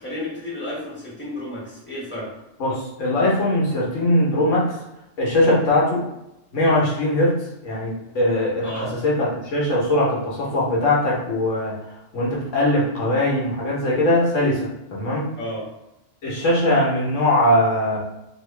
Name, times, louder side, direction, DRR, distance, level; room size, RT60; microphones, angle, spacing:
voice 1, 0.0-2.3 5.4-5.6 8.6-8.9 15.4-15.7, left 1 dB, 10° left, -7 dB, 1.2 m, -32 dB
voice 2, 2.6-4.7 5.2-6.0 6.5-7.4 7.6-11.7 12.1-15.3 16.2-18.0, left 1 dB, 80° left, -5 dB, 1.3 m, -21 dB
2.9 x 2.8 x 3.2 m, 0.90 s
omnidirectional pair, 1.3 m